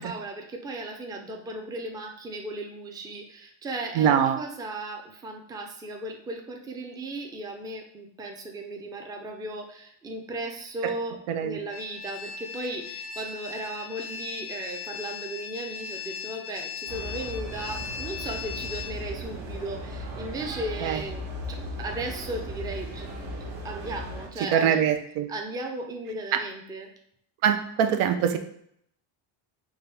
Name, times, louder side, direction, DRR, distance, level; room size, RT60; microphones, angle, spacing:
voice 1, 0.0-23.1 23.6-24.8 25.3-26.9, right 2 dB, 10° right, 2 dB, 0.3 m, -36 dB
voice 2, 3.9-4.4 10.8-10.9 11.3-11.6 20.8-21.0 24.5-25.3 26.3-26.4 27.4-28.4, right 8 dB, 85° right, 7 dB, 0.7 m, -23 dB
sound 1, 11.7-18.9, left 7 dB, 80° left, 0.6 m, -38 dB
sound 2, 16.9-24.3, equal, 60° right, 1.3 m, -37 dB
4.6 x 2.6 x 3.3 m, 0.69 s
cardioid pair, 130°, 48 cm